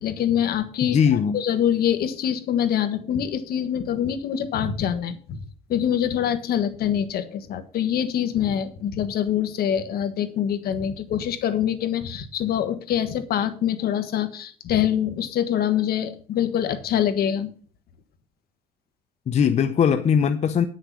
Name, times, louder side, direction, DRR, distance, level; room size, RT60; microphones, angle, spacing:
voice 1, 0.0-1.0 1.3-5.4 5.7-17.5, left 9 dB, 65° left, 9 dB, 1.4 m, -25 dB
voice 2, 0.8-1.4 19.3-20.6, left 7 dB, 40° left, 8 dB, 0.7 m, -20 dB
9.9 x 6.5 x 6.1 m, 0.41 s
cardioid pair, 110°, 17 cm